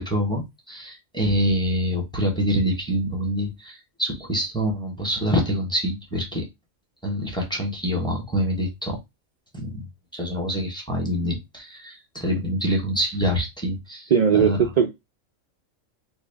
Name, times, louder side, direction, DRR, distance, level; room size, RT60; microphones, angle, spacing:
voice 1, 0.0-6.5 7.0-9.0 9.5-9.9 10.1-14.6, equal, 5° left, 1.0 m, -26 dB
voice 2, 14.1-14.9, right 7 dB, 65° right, 0.4 m, -18 dB
4.1 x 2.1 x 3.4 m
omnidirectional pair, 1.3 m